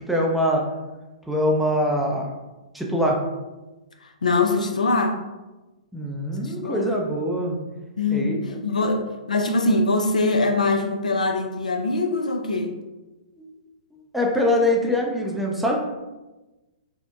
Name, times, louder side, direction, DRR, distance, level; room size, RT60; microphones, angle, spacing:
voice 1, 0.1-0.6 1.3-2.3 2.7-3.2 5.9-7.6 8.1-8.4 8.8-8.9 13.4-13.5 14.1-15.8, left 1 dB, ahead, -2 dB, 0.4 m, -23 dB
voice 2, 4.0-5.2 6.4-6.9 8.0-12.8, left 3 dB, 85° left, 4 dB, 0.3 m, -23 dB
2.8 x 2.0 x 2.3 m, 1.1 s
hypercardioid pair, 120°, 4 cm